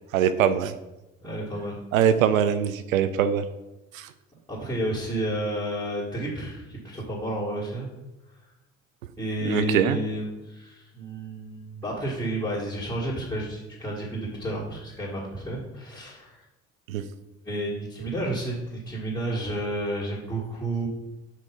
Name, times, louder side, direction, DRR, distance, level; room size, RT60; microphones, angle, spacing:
voice 1, 0.1-0.7 1.9-3.5 3.9-4.1 9.4-10.0 16.9-17.0, right 9 dB, 85° right, 11 dB, 0.5 m, -22 dB
voice 2, 1.2-1.8 4.5-7.9 9.2-16.4 17.4-20.9, right 1 dB, 5° left, -8 dB, 2.3 m, -31 dB
5.5 x 4.6 x 5.4 m, 1.0 s
figure-of-eight pair, 55°, 40 cm